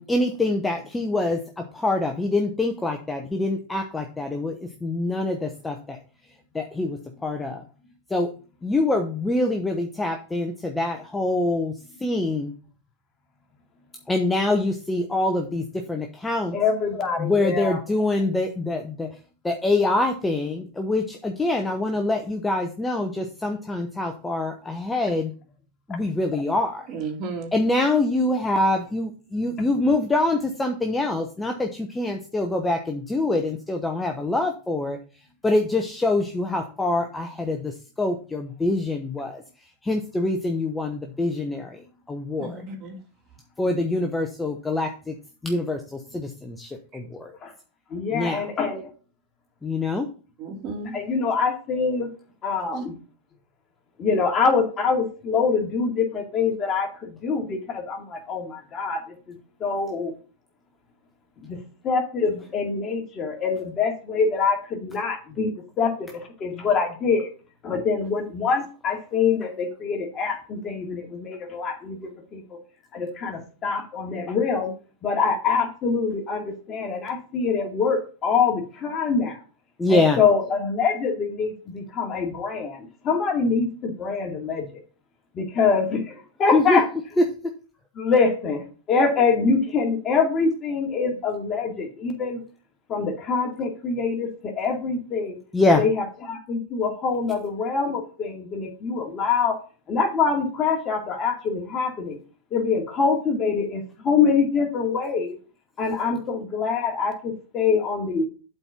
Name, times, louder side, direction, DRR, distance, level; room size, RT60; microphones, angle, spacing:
voice 1, 0.0-1.4 1.7-6.0 6.5-7.6 8.1-8.3 8.6-11.7 12.0-12.5 14.1-16.6 17.2-19.1 19.4-25.3 25.9-26.9 27.5-35.0 35.4-37.7 38.0-39.4 39.8-41.8 42.1-42.6 43.6-45.1 45.4-47.3 48.1-48.4 49.6-50.1 79.8-80.2 86.5-86.8 95.5-95.8, left 2 dB, 10° left, 4 dB, 0.9 m, -25 dB
voice 2, 16.5-17.8 47.4-47.5 47.9-48.9 50.9-52.1 52.4-52.9 54.0-59.1 59.6-60.1 61.4-61.6 61.8-67.3 67.6-72.4 72.9-74.7 75.0-79.4 79.9-84.8 85.3-86.9 88.0-92.4 92.9-95.4 95.8-99.6 99.9-102.2 102.5-105.4 105.8-108.3, left 5 dB, 30° left, 2 dB, 2.3 m, -24 dB
voice 3, 26.9-27.5 29.5-29.7 42.4-43.0 50.4-51.0 52.7-52.8, right 4 dB, 40° right, 2 dB, 2.7 m, -34 dB
7.9 x 4.5 x 5.7 m, 0.37 s
hypercardioid pair, 120°, 0 cm